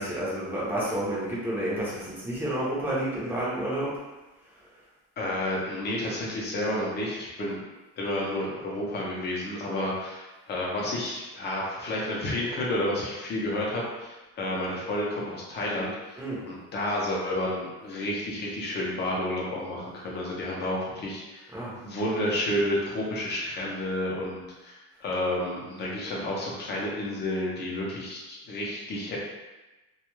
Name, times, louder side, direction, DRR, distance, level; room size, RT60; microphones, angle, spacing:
voice 1, 0.0-3.9 16.2-16.4 21.5-21.7, right 1 dB, 5° right, -8 dB, 0.7 m, -30 dB
voice 2, 5.2-7.6 8.0-21.5 21.8-28.2 28.4-29.2, left 1 dB, 30° left, -4 dB, 0.6 m, -30 dB
2.3 x 2.2 x 3.0 m, 1.1 s
cardioid pair, 155°, 33 cm